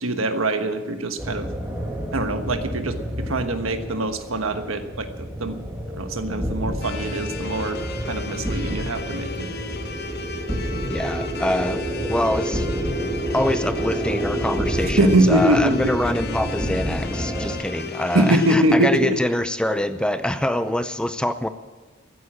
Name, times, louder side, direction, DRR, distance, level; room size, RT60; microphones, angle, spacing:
voice 1, 0.0-1.5 2.1-5.6 6.0-9.5 15.0-15.9 18.1-19.2, right 1 dB, 85° right, 8 dB, 1.3 m, -23 dB
sound 1, 1.2-17.6, equal, 10° right, 2.2 m, -29 dB
sound 2, 6.8-18.6, left 4 dB, 50° left, 1.0 m, -36 dB
voice 2, 10.8-11.8 12.1-12.7 13.3-21.5, left 1 dB, 5° left, 11 dB, 0.6 m, -24 dB
15.0 x 9.4 x 8.7 m, 1.4 s
head